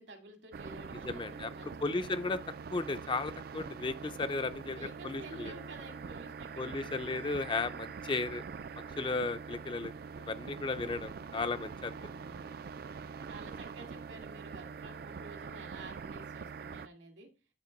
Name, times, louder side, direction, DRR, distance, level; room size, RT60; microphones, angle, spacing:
voice 1, 0.0-2.2 4.7-7.4 11.9-12.6 13.3-17.3, right 2 dB, 80° right, 2.3 m, -51 dB
sound 1, 0.5-16.9, right 5 dB, 55° right, 0.4 m, -44 dB
voice 2, 1.1-2.4 2.7-4.8 5.0-5.5 6.6-8.4 9.0-9.9 10.2-12.0, left 3 dB, 25° left, 0.4 m, -35 dB
9.7 x 3.7 x 5.2 m
head